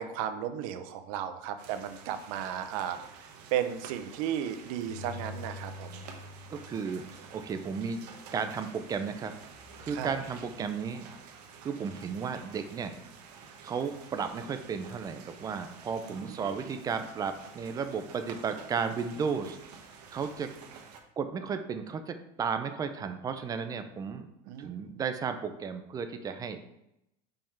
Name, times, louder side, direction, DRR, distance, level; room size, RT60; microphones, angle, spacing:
voice 1, 0.0-3.0 3.5-6.0 9.9-10.1 16.0-16.3 16.6-16.8 24.5-25.0, right 9 dB, 55° right, 9 dB, 0.7 m, -35 dB
sound 1, 1.6-21.0, right 6 dB, 80° right, 1.1 m, -50 dB
Bowed string instrument, 4.8-7.9 8.4-8.5, left 2 dB, 35° left, 2.0 m, -45 dB
voice 2, 6.5-8.0 8.3-9.3 9.8-11.1 11.6-12.9 13.6-19.6 20.1-20.5 21.2-24.3 24.6-26.6, right 6 dB, 20° right, 8 dB, 0.5 m, -34 dB
5.3 x 3.6 x 5.7 m, 0.83 s
supercardioid pair, 155°, 20 cm